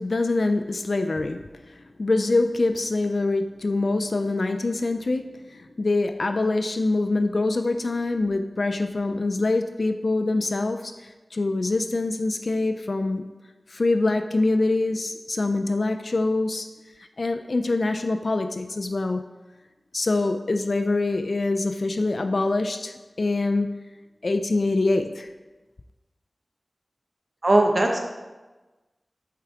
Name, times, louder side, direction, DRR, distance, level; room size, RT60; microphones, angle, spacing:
voice 1, 0.0-13.3 13.7-16.7 17.2-19.2 19.9-23.8 24.2-25.3, left 2 dB, 65° left, 7 dB, 0.3 m, -25 dB
voice 2, 27.4-28.0, right 1 dB, 50° right, 2 dB, 0.9 m, -19 dB
7.6 x 4.7 x 3.6 m, 1.2 s
wide cardioid pair, 75°, 0 cm